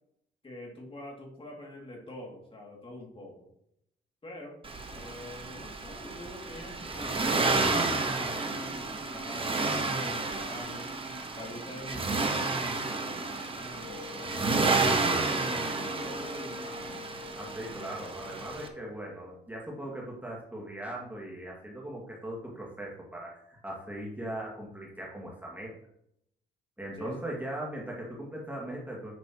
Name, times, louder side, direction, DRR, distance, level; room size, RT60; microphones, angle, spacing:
voice 1, 0.4-3.5 4.2-4.6 4.9-10.9 11.4-17.0 27.0-27.2, left 1 dB, 25° left, -1 dB, 2.6 m, -44 dB
Accelerating revving vroom, 4.6-18.7, right 3 dB, 25° right, 1.2 m, -31 dB
Wind instrument woodwind instrument, 13.8-19.4, left 2 dB, 45° right, 1.6 m, -44 dB
voice 2, 17.3-25.7 26.8-29.1, right 1 dB, 10° right, -3 dB, 2.1 m, -39 dB
9.7 x 6.1 x 3.0 m, 0.75 s
cardioid pair, 90°, 20 cm